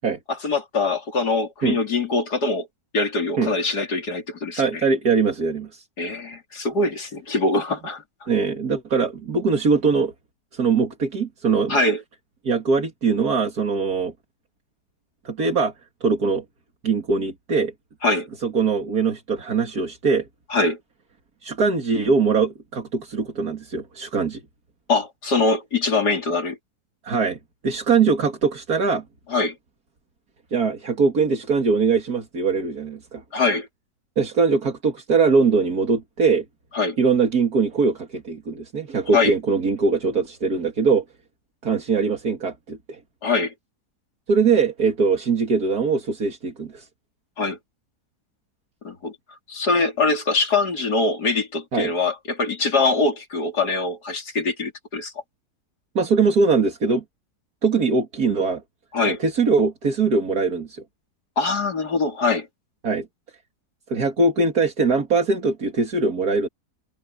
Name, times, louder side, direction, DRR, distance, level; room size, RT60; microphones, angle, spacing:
voice 1, 0.4-2.7 2.9-4.8 6.0-8.0 11.7-12.0 18.0-18.3 20.5-20.8 24.9-26.6 29.3-29.6 33.3-33.7 36.7-37.0 39.1-39.3 43.2-43.5 47.4-47.6 48.8-49.2 49.5-55.1 58.9-59.2 61.4-62.5, left 3 dB, 80° left, 3.7 m, -23 dB
voice 2, 4.6-5.8 8.3-10.1 10.5-11.8 12.4-14.1 15.2-15.7 16.0-16.4 16.8-17.7 18.4-20.2 21.4-24.4 27.0-27.4 27.6-29.0 30.5-33.2 34.2-36.4 37.0-41.0 41.6-43.0 44.3-46.9 51.7-51.9 55.9-57.0 57.6-58.6 59.0-60.8 62.8-63.1 63.9-66.5, right 4 dB, 70° right, 2.9 m, -21 dB
open air
omnidirectional pair, 1.7 m